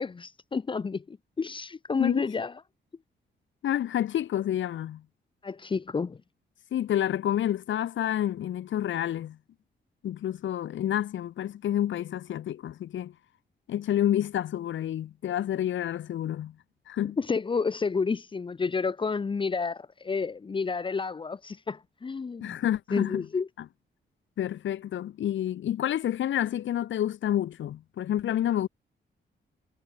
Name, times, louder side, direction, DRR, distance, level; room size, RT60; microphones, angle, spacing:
voice 1, 0.0-2.5 5.4-6.2 17.2-22.6 22.9-23.5, left 5 dB, 25° left, 1.2 m, -30 dB
voice 2, 3.6-5.0 6.7-9.4 10.0-13.1 13.7-16.5 16.9-17.2 22.4-23.3 24.4-28.7, left 11 dB, 85° left, 4.1 m, -29 dB
wide cardioid pair, 160°, 19 cm